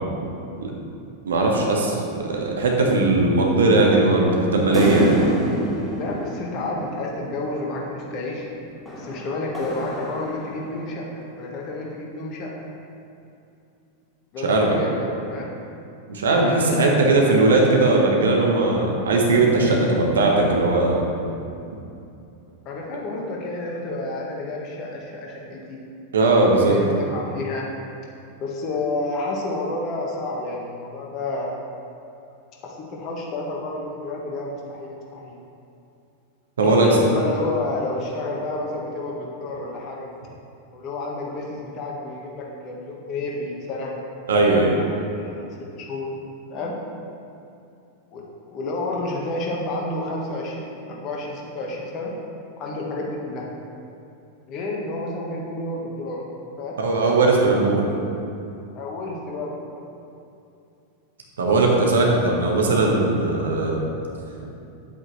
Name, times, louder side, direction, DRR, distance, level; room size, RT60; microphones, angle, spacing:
voice 1, 1.2-5.1 14.4-14.8 16.1-21.0 26.1-26.8 36.6-36.9 44.3-44.7 56.8-57.8 61.4-63.8, right 2 dB, 65° right, -1 dB, 1.4 m, -19 dB
sound 1, 4.7-7.4 8.9-10.9, equal, 5° left, 1.7 m, -28 dB
voice 2, 5.9-8.5 8.9-12.5 14.3-15.5 16.5-16.9 22.6-25.8 26.6-27.7 28.4-31.5 32.6-35.4 36.6-40.1 40.7-43.9 44.7-45.5 45.7-46.1 46.5-46.7 48.1-48.2 48.5-52.1 52.6-53.5 54.5-56.2 56.6-56.7 58.7-59.8, left 2 dB, 35° left, -2 dB, 1.6 m, -30 dB
9.3 x 8.1 x 3.3 m, 2.7 s
figure-of-eight pair, 90°, 0 cm